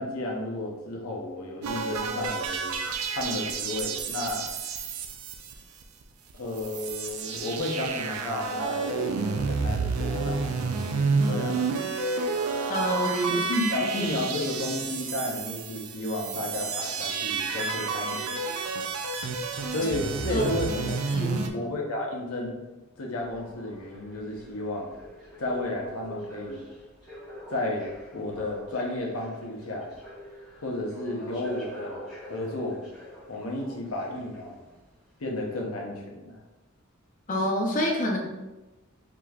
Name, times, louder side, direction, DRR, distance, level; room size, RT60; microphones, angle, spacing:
voice 1, 0.0-2.7 3.1-4.5 6.3-10.4 11.2-11.5 13.3-18.4 19.7-21.0 21.5-22.6 23.0-24.9 25.4-26.6 27.5-27.9 28.1-29.9 30.6-32.8 33.3-34.6 35.2-36.4, left 1 dB, 85° left, -1 dB, 0.9 m, -32 dB
sound 1, 1.6-6.0 6.3-6.4 6.6-21.5, right 4 dB, 85° right, 0.4 m, -30 dB
voice 2, 12.7-13.4 20.3-20.4 21.1-21.5 37.3-38.2, equal, 40° left, -1 dB, 0.7 m, -26 dB
sound 2, 23.2-34.8 35.4-35.5, equal, ahead, 1.3 m, -45 dB
4.8 x 2.9 x 2.4 m, 1.1 s
head